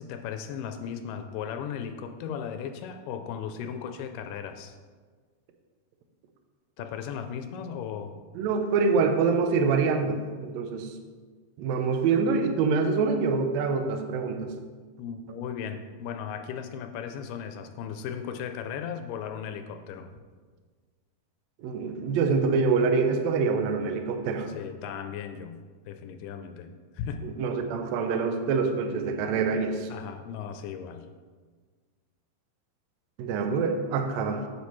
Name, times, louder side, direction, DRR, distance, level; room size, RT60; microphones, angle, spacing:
voice 1, 0.0-4.8 6.8-8.1 15.0-20.1 24.5-25.6 25.9-27.2 29.9-31.1, left 7 dB, 85° left, 7 dB, 2.1 m, -36 dB
voice 2, 8.3-11.0 11.6-14.5 21.6-24.5 27.2-29.9 33.2-34.5, right 4 dB, 75° right, 6 dB, 1.6 m, -25 dB
8.4 x 7.9 x 3.1 m, 1.5 s
omnidirectional pair, 3.8 m